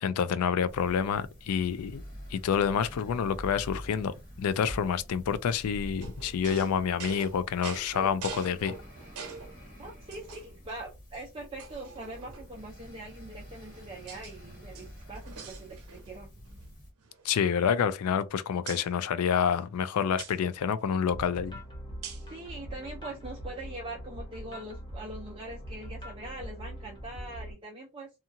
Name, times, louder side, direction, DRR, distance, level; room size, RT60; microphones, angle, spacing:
voice 1, 0.0-2.0 2.3-8.7 17.2-21.6, left 7 dB, 75° left, 0.3 m, -28 dB
sound 1, 0.7-16.9, equal, 35° left, 1.2 m, -47 dB
sound 2, 6.0-9.6 10.1-10.7 11.1-11.2 11.6-12.6 13.4-14.3 14.6-16.2 16.5-16.7 17.0-18.3 18.7-18.9 20.2-20.4 22.0-22.4, right 6 dB, 85° right, 0.7 m, -44 dB
voice 2, 9.8-16.3 22.3-28.1, right 2 dB, 25° right, 0.5 m, -42 dB
sound 3, 21.1-27.5, equal, 20° left, 0.7 m, -42 dB
2.8 x 2.4 x 2.5 m
head